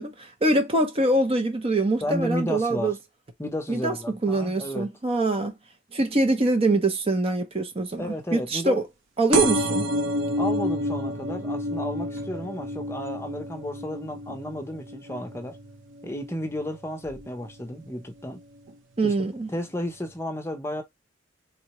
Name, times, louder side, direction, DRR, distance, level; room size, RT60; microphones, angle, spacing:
voice 1, 0.0-2.9 3.7-3.9 4.2-5.5 5.9-8.8 9.2-9.9 19.0-19.5, right 2 dB, 30° right, 0.6 m, -24 dB
voice 2, 2.0-3.0 3.4-4.9 8.0-8.8 10.4-15.6 16.0-18.4 19.0-19.1 19.5-20.8, equal, 15° left, 0.6 m, -32 dB
sound 1, 9.3-16.6 17.0-17.5 18.4-18.5 18.7-18.8 19.0-19.1, equal, 70° right, 0.6 m, -29 dB
3.7 x 2.1 x 2.9 m
head